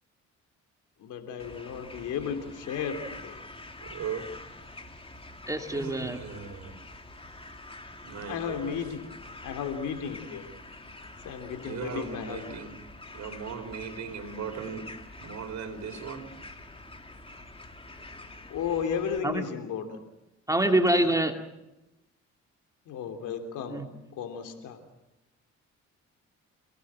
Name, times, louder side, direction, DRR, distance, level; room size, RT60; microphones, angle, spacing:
voice 1, 1.0-3.4 8.3-9.1 9.4-10.4 11.2-12.6 18.5-20.0 22.9-23.8 24.2-24.8, left 7 dB, 85° left, 5 dB, 3.3 m, -34 dB
sound 1, 1.4-19.2, left 2 dB, 20° left, 2.7 m, -46 dB
voice 2, 3.8-4.3 5.7-6.8 8.0-8.8 11.6-12.8 13.1-14.9 15.2-16.3, right 6 dB, 65° right, 4 dB, 4.5 m, -38 dB
voice 3, 5.5-6.2 19.2-19.4 20.5-21.4 23.7-23.9, right 1 dB, 10° right, 5 dB, 2.4 m, -25 dB
27.5 x 18.5 x 7.6 m, 0.96 s
cardioid pair, 90°, 30 cm